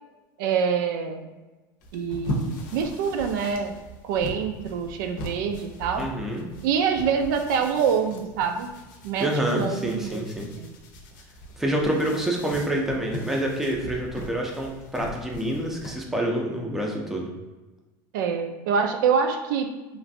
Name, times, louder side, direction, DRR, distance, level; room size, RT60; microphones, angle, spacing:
voice 1, 0.4-1.3 1.9-3.8 4.0-6.1 6.6-8.7 9.0-10.2 10.6-10.7 18.1-19.7, right 6 dB, 80° right, 6 dB, 0.4 m, -25 dB
sound 1, 1.8-15.9, equal, 80° left, 0.6 m, -39 dB
voice 2, 6.0-6.4 9.2-10.5 11.6-17.3, right 1 dB, 5° right, -1 dB, 0.4 m, -27 dB
3.1 x 2.5 x 2.6 m, 1.2 s
supercardioid pair, 145°, 10 cm